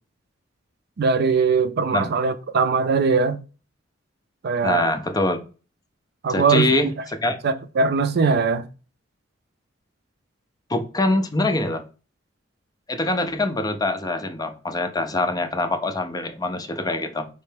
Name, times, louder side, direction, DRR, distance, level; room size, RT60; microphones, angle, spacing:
voice 1, 1.0-3.4 4.4-4.9 6.2-6.7 7.4-8.7, right 4 dB, 55° right, 0.4 m, -20 dB
voice 2, 4.6-5.4 6.3-6.9 7.2-7.4 10.7-11.8 12.9-17.3, left 2 dB, 20° left, 0.5 m, -24 dB
4.4 x 3.2 x 3.4 m
head